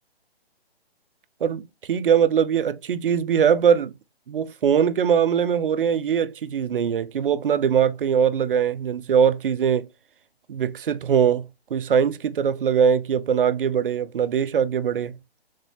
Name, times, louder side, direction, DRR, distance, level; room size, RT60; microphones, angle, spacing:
voice 1, 1.9-3.9 4.3-9.9 10.5-11.5 11.7-15.1, right 7 dB, 60° right, 0.4 m, -21 dB
3.5 x 2.7 x 3.3 m
hypercardioid pair, 165°, 31 cm